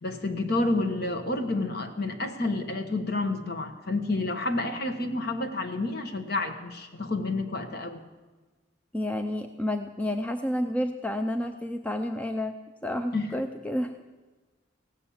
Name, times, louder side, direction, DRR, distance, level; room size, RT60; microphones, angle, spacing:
voice 1, 0.0-8.0 13.1-13.3, left 2 dB, 50° left, 6 dB, 1.2 m, -29 dB
voice 2, 8.9-12.6 12.8-13.9, left 1 dB, 5° left, 6 dB, 0.4 m, -30 dB
16.5 x 7.3 x 8.5 m, 1.3 s
head